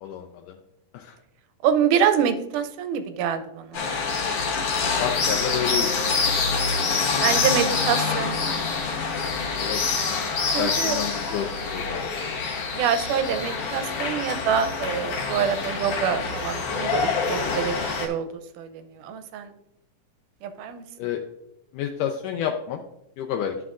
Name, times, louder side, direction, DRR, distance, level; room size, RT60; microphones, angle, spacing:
voice 1, 0.0-0.6 0.9-1.2 5.0-6.0 9.6-10.3 10.6-12.1 21.0-21.2 21.7-22.8 23.2-23.5, left 9 dB, 80° left, 3 dB, 2.1 m, -30 dB
voice 2, 1.6-3.9 7.2-8.4 10.5-11.0 12.7-18.3 18.6-19.5 20.4-20.8, right 8 dB, 80° right, 9 dB, 2.1 m, -26 dB
sound 1, 3.7-18.1, left 4 dB, 60° left, 1.6 m, -26 dB
12.0 x 5.8 x 2.5 m, 0.85 s
omnidirectional pair, 3.8 m